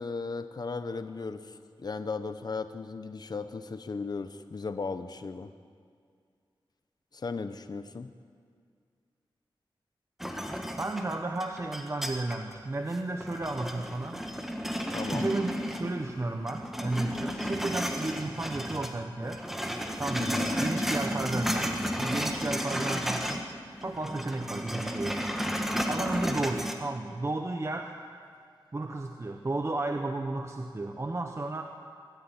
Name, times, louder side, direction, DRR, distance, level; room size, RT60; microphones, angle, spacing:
voice 1, 0.0-5.5 7.1-8.1 14.9-15.3 20.2-20.5, left 4 dB, 50° left, 10 dB, 0.9 m, -36 dB
sound 1, 10.2-12.5 12.9-16.1 16.4-18.9 19.2-23.5 23.8-26.7, equal, 5° right, 1.6 m, -32 dB
voice 2, 10.8-14.2 15.0-19.5 20.0-20.3 20.6-23.5 23.8-25.2 25.9-27.9 28.7-31.6, right 2 dB, 30° right, 4 dB, 1.1 m, -33 dB
23.5 x 13.0 x 9.8 m, 2.2 s
wide cardioid pair, 120°, 9 cm